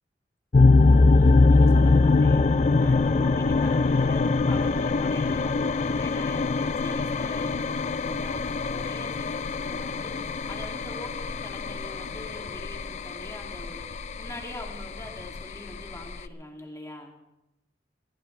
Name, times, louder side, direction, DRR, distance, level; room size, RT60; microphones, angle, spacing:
sound 1, 0.5-16.3, left 3 dB, 40° left, 0.4 m, -23 dB
voice 1, 0.8-17.1, left 1 dB, 15° left, 0 dB, 2.4 m, -43 dB
21.5 x 15.5 x 3.3 m, 0.94 s
head